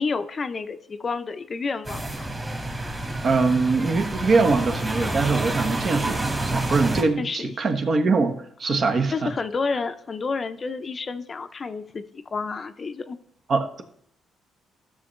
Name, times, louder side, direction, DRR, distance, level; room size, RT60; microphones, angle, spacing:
voice 1, 0.0-2.3 7.2-7.5 8.6-8.8 9.1-13.2, left 4 dB, 35° left, 10 dB, 0.6 m, -30 dB
sound 1, 1.8-7.0, right 2 dB, 20° right, 1.9 m, -28 dB
voice 2, 3.2-6.2 6.5-9.3 13.5-13.8, right 4 dB, 50° right, 6 dB, 1.1 m, -22 dB
13.5 x 6.3 x 3.2 m, 0.68 s
cardioid pair, 90°, 0 cm